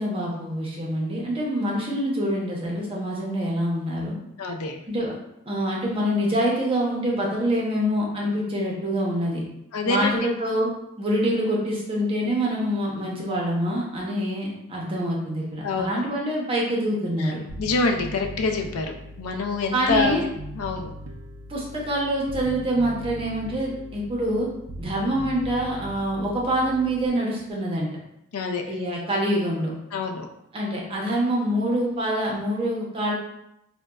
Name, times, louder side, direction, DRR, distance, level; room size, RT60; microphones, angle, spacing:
voice 1, 0.0-4.1 4.9-5.1 5.5-9.4 9.8-10.7 11.0-17.4 19.7-20.2 21.5-24.5 24.8-27.9 28.7-29.7 30.5-33.1, equal, 25° right, -3 dB, 0.6 m, -25 dB
voice 2, 4.4-4.8 9.7-10.2 15.6-15.9 17.2-17.3 17.6-20.2 20.5-20.9 28.3-28.6 29.9-30.3, left 3 dB, 85° left, 4 dB, 0.4 m, -26 dB
Bass guitar, 17.5-27.1, right 1 dB, 70° right, 0.4 m, -39 dB
3.8 x 2.2 x 2.2 m, 0.82 s
head